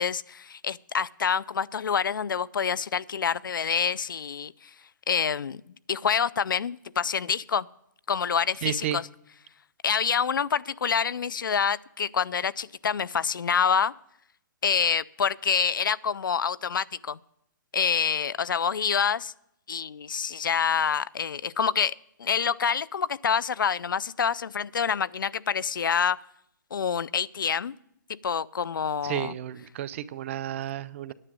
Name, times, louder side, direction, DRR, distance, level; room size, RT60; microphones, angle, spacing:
voice 1, 0.0-4.7 5.1-5.6 5.9-7.7 8.1-9.1 9.8-13.9 14.6-17.2 17.7-19.3 19.7-21.9 22.2-26.2 26.7-27.8 28.1-29.3, left 7 dB, 90° left, 22 dB, 0.4 m, -27 dB
voice 2, 8.6-9.0 29.0-31.1, right 11 dB, 40° right, 15 dB, 0.5 m, -32 dB
9.8 x 7.2 x 8.8 m, 0.76 s
hypercardioid pair, 145°, 11 cm